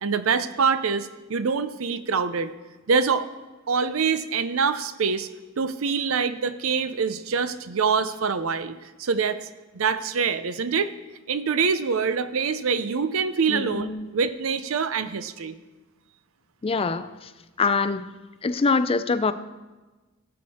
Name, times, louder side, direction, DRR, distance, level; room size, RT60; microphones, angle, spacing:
voice 1, 0.0-2.5 2.9-3.3 3.7-5.3 5.6-9.5 9.7-10.9 11.3-15.5, right 5 dB, 75° right, 13 dB, 0.6 m, -25 dB
voice 2, 13.5-14.1 16.6-17.1 17.6-18.0 18.4-19.3, left 4 dB, 25° left, 12 dB, 0.4 m, -24 dB
16.5 x 6.5 x 4.3 m, 1.2 s
head